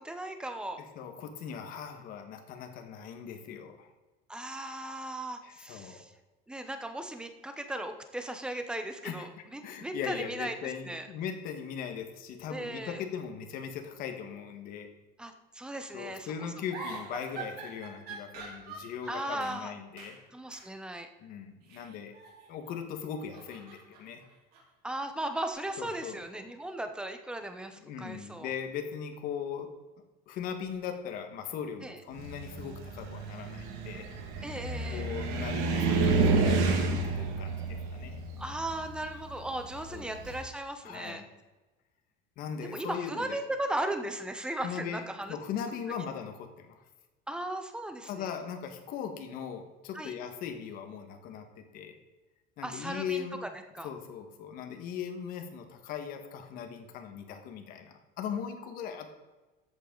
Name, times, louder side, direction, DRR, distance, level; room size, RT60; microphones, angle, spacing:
voice 1, 0.0-0.8 4.3-6.1 6.5-11.1 12.5-13.0 15.2-16.5 19.1-19.7 20.3-21.1 24.8-28.5 31.8-32.0 34.4-35.1 38.4-41.2 42.6-45.4 47.3-48.3 49.9-50.1 52.6-53.9, right 1 dB, 5° right, 7 dB, 0.8 m, -37 dB
voice 2, 0.9-3.9 5.4-6.0 9.0-9.3 9.6-14.9 15.9-20.2 21.2-22.1 22.5-24.2 25.8-26.5 27.7-29.7 30.3-34.1 34.9-37.6 37.9-38.2 39.9-40.1 40.8-41.2 42.4-43.4 44.6-46.8 48.0-52.0 52.6-53.4 53.8-59.1, left 7 dB, 45° left, 6 dB, 1.6 m, -39 dB
sound 1, 16.7-19.6 20.0-20.2 20.5-20.7 21.6-22.8 23.1-25.5, right 4 dB, 50° right, 3.8 m, -45 dB
Car, 32.2-40.4, right 3 dB, 70° right, 2.0 m, -30 dB
14.0 x 8.2 x 3.9 m, 1.2 s
cardioid pair, 170°, 20 cm